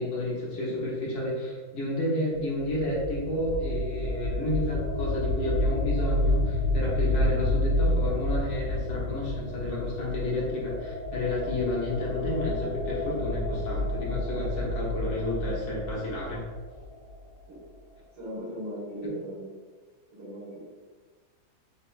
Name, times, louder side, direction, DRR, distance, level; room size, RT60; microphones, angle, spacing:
voice 1, 0.0-16.4, left 1 dB, 85° left, -6 dB, 2.0 m, -31 dB
sound 1, 2.4-17.2, left 1 dB, 65° left, 1.2 m, -29 dB
voice 2, 18.2-19.5 20.1-20.6, equal, 80° right, -8 dB, 2.1 m, -38 dB
6.6 x 2.4 x 2.3 m, 1.4 s
omnidirectional pair, 2.2 m